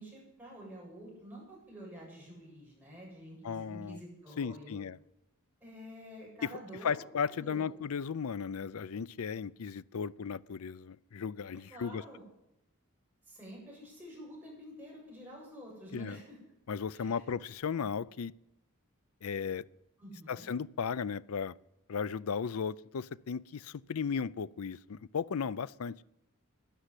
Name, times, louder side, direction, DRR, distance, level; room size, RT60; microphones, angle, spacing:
voice 1, 0.0-4.8 5.6-7.7 11.7-12.2 13.3-16.4 16.9-17.2 20.0-20.5, equal, 10° right, 7.6 m, -49 dB
voice 2, 3.4-4.0 4.4-5.0 6.8-12.0 15.9-16.2 16.7-18.3 19.2-19.6 20.3-21.6 21.9-26.0, left 6 dB, 70° left, 0.5 m, -35 dB
12.5 x 10.0 x 9.8 m
head